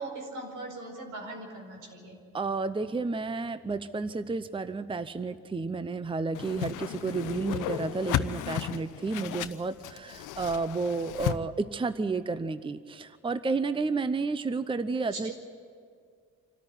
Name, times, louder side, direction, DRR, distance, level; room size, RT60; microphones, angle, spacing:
voice 1, 0.0-2.2 15.1-15.3, right 2 dB, 85° right, 2 dB, 5.1 m, -40 dB
voice 2, 2.3-15.3, right 4 dB, 15° right, 13 dB, 0.7 m, -31 dB
Whoosh swoosh swish, 6.3-11.4, left 12 dB, 90° left, 0.7 m, -34 dB
26.0 x 13.5 x 10.0 m, 2.1 s
cardioid pair, 90°, 30 cm